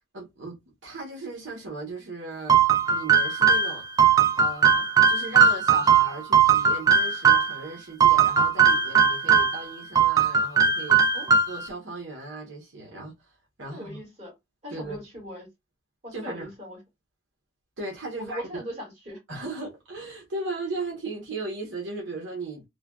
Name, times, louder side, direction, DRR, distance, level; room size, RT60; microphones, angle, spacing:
voice 1, 0.1-2.6 2.9-3.8 4.4-11.2 11.5-14.0 14.7-15.0 16.1-16.5 17.8-18.4 19.3-22.6, right 2 dB, 75° right, 1.0 m, -36 dB
sound 1, 2.5-7.6 8.0-9.6 10.0-11.7, right 6 dB, 20° right, 0.3 m, -19 dB
voice 2, 13.7-14.3 14.6-15.5 16.0-16.8 18.1-19.2, equal, 35° right, 1.7 m, -39 dB
3.2 x 2.2 x 2.2 m
head